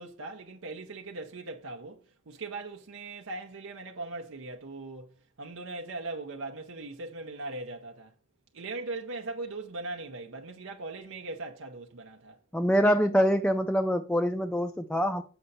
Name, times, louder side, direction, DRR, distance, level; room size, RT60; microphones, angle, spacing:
voice 1, 0.0-8.1 8.5-12.4, right 2 dB, 75° right, 0.7 m, -40 dB
voice 2, 12.5-15.2, equal, 5° left, 0.4 m, -25 dB
6.9 x 5.4 x 4.0 m
head